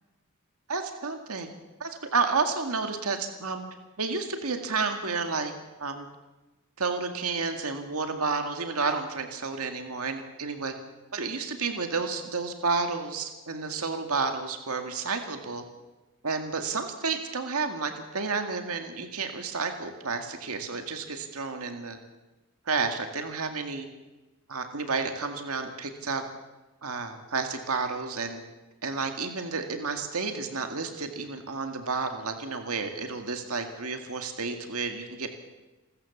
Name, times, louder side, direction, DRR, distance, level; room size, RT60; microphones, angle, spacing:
voice 1, 0.7-1.5 1.8-3.6 4.0-5.5 5.8-6.1 6.8-10.7 11.1-15.6 16.2-22.0 22.7-23.9 24.5-26.2 26.8-28.4 28.8-35.3, right 4 dB, 85° right, 6 dB, 2.0 m, -31 dB
28.0 x 14.0 x 7.2 m, 1.1 s
head